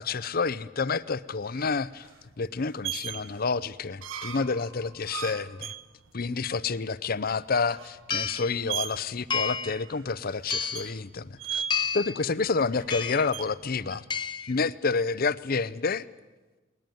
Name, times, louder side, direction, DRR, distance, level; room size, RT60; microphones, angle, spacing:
voice 1, 0.0-2.1 2.4-5.7 6.1-11.6 11.9-14.0 14.4-16.1, left 4 dB, 50° left, 17 dB, 0.7 m, -29 dB
sound 1, 0.8-14.2, right 9 dB, 80° right, 1.2 m, -40 dB
sound 2, 7.3-7.4 8.1-8.5 9.3-9.8 10.5-10.9 11.7-12.2 12.9-13.3 14.1-14.5, left 6 dB, 25° left, 1.0 m, -30 dB
19.5 x 19.5 x 9.4 m, 1.2 s
head